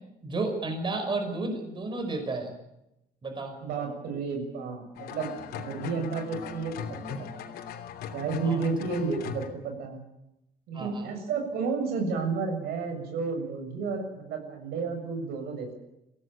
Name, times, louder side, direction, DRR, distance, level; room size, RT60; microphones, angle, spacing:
voice 1, 0.2-2.5 3.2-3.5 8.4-8.6 10.7-11.1, right 2 dB, 30° right, 5 dB, 5.3 m, -32 dB
voice 2, 3.6-7.0 7.3-7.6 8.1-10.0 10.7-15.7, right 4 dB, 90° right, 5 dB, 6.9 m, -31 dB
sound 1, 5.0-9.5, left 7 dB, 85° left, 3.1 m, -39 dB
25.0 x 17.0 x 9.0 m, 0.88 s
cardioid pair, 140°, 16 cm